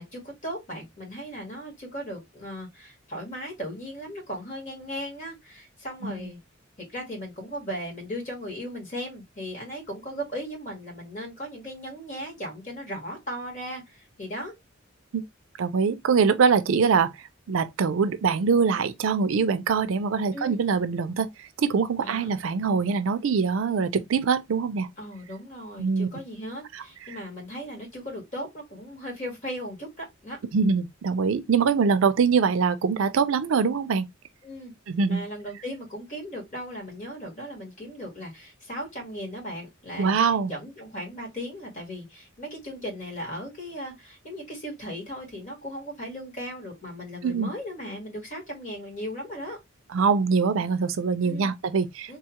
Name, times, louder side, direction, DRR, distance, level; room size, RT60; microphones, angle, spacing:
voice 1, 0.0-6.4 6.9-14.5 20.3-20.6 22.0-22.3 25.0-30.4 34.4-34.7 35.1-40.2 40.4-49.6 51.2-51.5 52.1-52.2, equal, 40° left, 1.7 m, -37 dB
voice 2, 15.6-17.1 17.5-24.9 25.8-26.1 26.7-26.8 27.1-27.2 30.5-34.1 34.9-35.2 40.0-40.5 47.2-47.5 49.9-52.2, right 5 dB, 70° right, 0.4 m, -23 dB
3.4 x 2.3 x 2.8 m
head